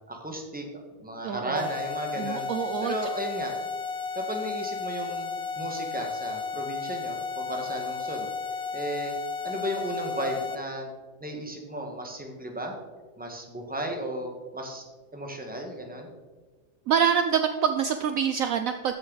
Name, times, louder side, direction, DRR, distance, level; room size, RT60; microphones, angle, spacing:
voice 1, 0.1-0.7 1.0-2.5 2.8-3.5 4.1-5.3 5.6-8.3 8.7-9.1 9.4-10.9 11.2-12.7 13.2-14.8 15.1-16.1, right 1 dB, 5° right, 2 dB, 1.4 m, -34 dB
voice 2, 1.2-1.7 2.1-2.9 16.9-18.9, right 8 dB, 70° right, 7 dB, 0.9 m, -26 dB
sound 1, 1.5-10.6, left 5 dB, 35° left, 0.6 m, -33 dB
14.5 x 6.7 x 4.0 m, 1.4 s
omnidirectional pair, 1.7 m